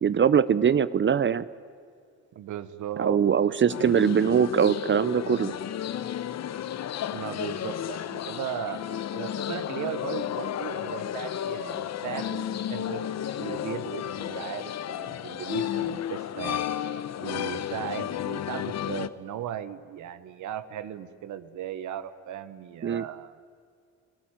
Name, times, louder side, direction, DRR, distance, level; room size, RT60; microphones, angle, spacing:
voice 1, 0.0-1.5 3.0-5.5 22.8-23.0, right 7 dB, 40° right, 16 dB, 0.7 m, -22 dB
voice 2, 2.3-3.2 3.5-3.9 7.1-8.8 9.1-13.0 13.4-16.7 17.2-23.3, right 10 dB, 75° right, 12 dB, 1.2 m, -37 dB
sound 1, 3.7-19.1, left 10 dB, 60° left, 1.0 m, -32 dB
30.0 x 17.5 x 9.0 m, 2.3 s
cardioid pair, 90°, 30 cm